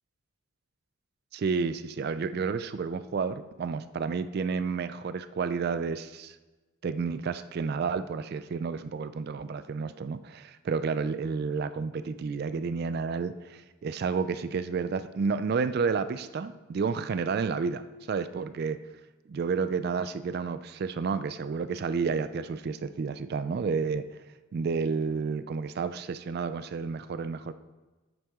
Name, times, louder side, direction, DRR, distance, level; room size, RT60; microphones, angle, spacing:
voice 1, 1.3-6.4 6.8-18.8 19.3-24.2 24.5-27.5, right 5 dB, 45° right, 12 dB, 0.3 m, -31 dB
9.1 x 9.0 x 3.6 m, 1.2 s
head